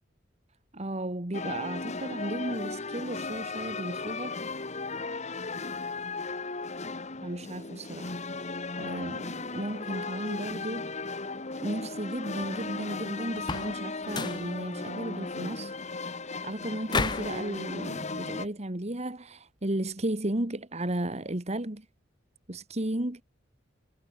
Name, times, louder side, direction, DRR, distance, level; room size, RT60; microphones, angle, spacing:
voice 1, 0.7-4.4 7.2-10.9 11.6-15.7 16.4-21.9 22.5-23.2, right 1 dB, 35° right, 2.0 m, -34 dB
sound 1, 1.3-18.5, left 3 dB, 40° left, 2.2 m, -36 dB
sound 2, 13.4-13.8 14.1-14.5 16.9-17.4, left 4 dB, 25° left, 0.6 m, -31 dB
head